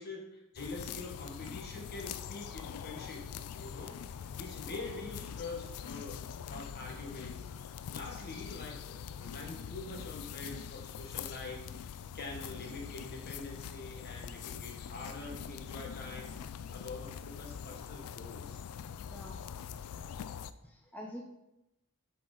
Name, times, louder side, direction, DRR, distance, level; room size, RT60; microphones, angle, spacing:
voice 1, 0.0-3.3 3.5-6.2 6.5-7.5 7.9-18.6, left 2 dB, 45° left, 0 dB, 1.5 m, -45 dB
sound 1, 0.6-20.5, left 8 dB, 80° left, 0.3 m, -44 dB
voice 2, 18.9-19.4 20.6-21.2, equal, 5° left, 0 dB, 0.5 m, -47 dB
7.2 x 4.8 x 4.0 m, 0.89 s
head